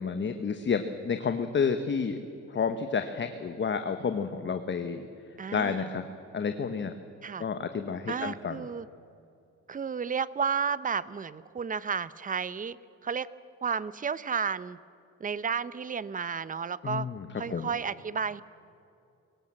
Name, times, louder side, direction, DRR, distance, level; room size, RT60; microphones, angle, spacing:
voice 1, 0.0-2.2 2.5-5.1 5.5-6.0 6.3-6.9 7.4-8.6 16.8-17.7, left 6 dB, 40° left, 8 dB, 1.2 m, -30 dB
voice 2, 5.4-5.9 7.2-7.5 8.1-8.9 9.7-12.8 13.0-13.3 13.6-14.8 15.2-17.1 17.4-18.4, right 6 dB, 25° right, 17 dB, 0.7 m, -32 dB
23.5 x 17.0 x 7.6 m, 2.5 s
cardioid pair, 90°, 30 cm